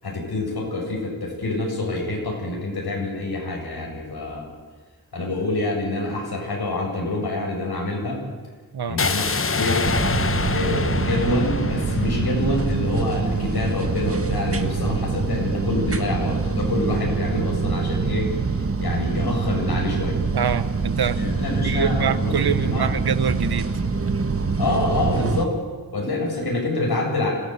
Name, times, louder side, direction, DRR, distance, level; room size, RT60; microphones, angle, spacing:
voice 1, 0.0-4.4 5.1-8.2 8.9-9.8 10.5-18.3 18.8-20.2 21.2-22.9 24.6-25.6 25.9-27.3, left 2 dB, 90° left, -1 dB, 7.6 m, -26 dB
sound 1, 9.0-13.0, left 4 dB, 35° left, 1.0 m, -26 dB
sound 2, 9.8-25.5, right 4 dB, 35° right, 1.5 m, -25 dB
voice 2, 20.3-21.2 21.6-23.8, right 7 dB, 90° right, 14 dB, 1.0 m, -25 dB
26.0 x 16.5 x 8.2 m, 1.4 s
wide cardioid pair, 75°, 37 cm